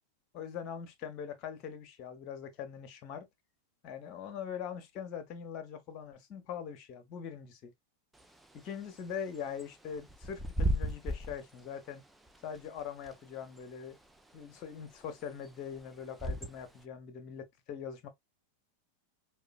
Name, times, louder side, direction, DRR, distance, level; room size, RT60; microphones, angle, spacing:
voice 1, 0.3-3.3 3.8-7.7 8.6-12.0 12.4-14.0 14.3-18.1, left 7 dB, 40° left, 0.8 m, -42 dB
Bird / Wind, 8.1-16.8, right 1 dB, 5° right, 0.4 m, -38 dB
4.7 x 2.3 x 2.3 m
figure-of-eight pair, 90°, 0 cm